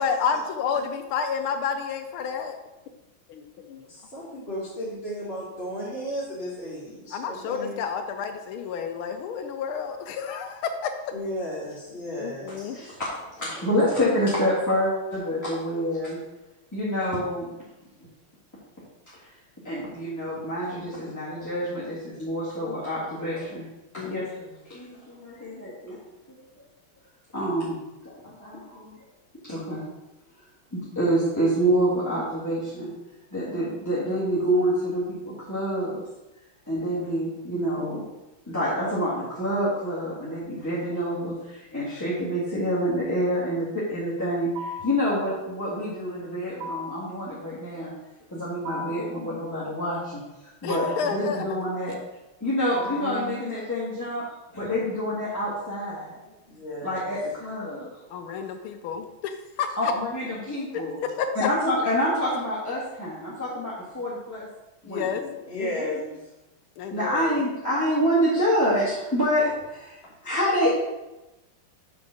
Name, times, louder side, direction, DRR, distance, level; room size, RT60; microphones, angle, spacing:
voice 1, 0.0-2.5 3.3-3.9 7.1-10.9 12.2-12.8 24.0-24.3 50.6-51.5 58.1-59.9 60.7-60.8 61.2-61.3 64.9-65.9 66.8-67.4, left 6 dB, 80° left, 7 dB, 1.5 m, -30 dB
voice 2, 3.9-7.8 11.1-12.8 13.4-14.0 52.7-53.4 56.5-57.1 65.5-66.3 70.0-70.1, equal, 30° left, -8 dB, 1.7 m, -35 dB
voice 3, 12.7-16.2 16.7-17.5 19.2-19.3 19.6-23.6 23.9-26.0 26.3-26.4 27.3-27.8 28.0-29.0 29.5-29.8 30.7-32.9 33.3-36.0 36.7-38.0 38.5-47.9 48.3-51.9 52.4-54.2 54.5-56.2 56.8-57.9 58.3-58.4 59.8-61.0 61.3-64.5 64.8-65.1 66.9-70.8, equal, 10° left, -10 dB, 1.6 m, -27 dB
sound 1, 44.6-45.0 46.6-47.1 48.7-49.1 50.7-51.2 52.7-53.2, left 2 dB, 70° right, 1.4 m, -35 dB
5.9 x 5.2 x 6.5 m, 1.0 s
omnidirectional pair, 2.3 m